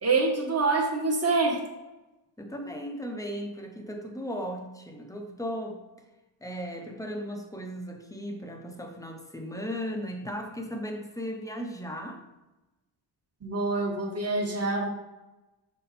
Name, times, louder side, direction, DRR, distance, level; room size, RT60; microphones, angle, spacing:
voice 1, 0.0-1.6 13.4-14.9, right 3 dB, 30° right, -1 dB, 1.3 m, -26 dB
voice 2, 2.4-5.8 6.4-12.2, equal, 5° left, 3 dB, 0.8 m, -36 dB
6.3 x 4.3 x 4.2 m, 1.0 s
wide cardioid pair, 135°, 48 cm